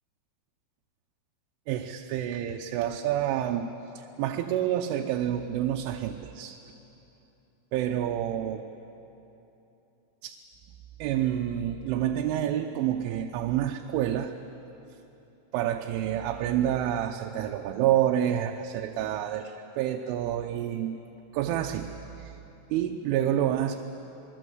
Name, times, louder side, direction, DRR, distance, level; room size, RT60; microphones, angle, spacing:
voice 1, 1.7-6.6 7.7-8.7 10.2-10.4 11.0-14.3 15.5-21.0 21.3-21.9 22.2-22.3 22.7-23.8, right 11 dB, 85° right, 3 dB, 3.4 m, -28 dB
28.5 x 21.5 x 7.9 m, 3.0 s
omnidirectional pair, 5.5 m